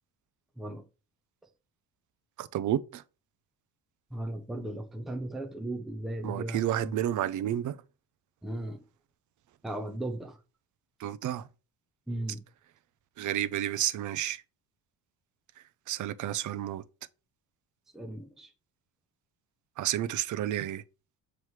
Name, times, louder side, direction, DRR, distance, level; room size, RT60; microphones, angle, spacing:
voice 1, 2.4-3.0 6.2-7.8 11.0-11.4 13.2-14.4 15.9-16.8 19.8-20.8, right 12 dB, 55° right, 0.5 m, -31 dB
voice 2, 4.1-7.0 8.4-8.8 9.6-10.4 12.1-12.4 17.9-18.5, right 1 dB, ahead, 0.6 m, -36 dB
7.4 x 3.2 x 4.6 m
cardioid pair, 155°, 37 cm